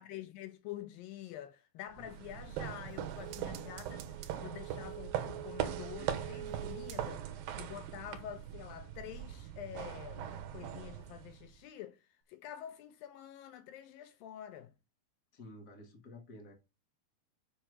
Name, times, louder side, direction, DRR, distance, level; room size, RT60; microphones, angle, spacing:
voice 1, 0.0-14.7, left 11 dB, 80° left, 2.1 m, -47 dB
sound 1, 1.9-11.6, right 10 dB, 70° right, 2.5 m, -41 dB
sound 2, 2.3-7.5 7.8-7.9, right 11 dB, 90° right, 3.1 m, -49 dB
voice 2, 15.3-16.5, left 1 dB, 50° left, 1.1 m, -51 dB
6.7 x 5.8 x 6.0 m
omnidirectional pair, 4.7 m